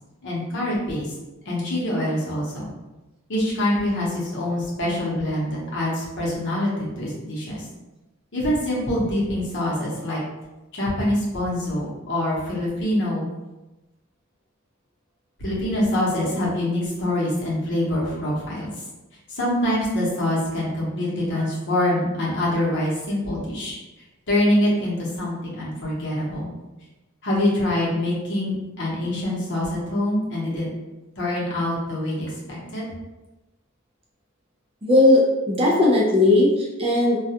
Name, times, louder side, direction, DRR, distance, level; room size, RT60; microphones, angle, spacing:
voice 1, 0.2-1.1 1.4-2.7 3.3-7.6 8.3-10.2 10.7-13.3 15.4-18.7 19.3-23.8 24.3-26.5 27.2-30.7 31.2-32.9, left 1 dB, 60° left, -5 dB, 0.9 m, -25 dB
voice 2, 34.8-37.2, left 2 dB, 30° right, -3 dB, 0.5 m, -17 dB
2.3 x 2.2 x 2.8 m, 1.0 s
head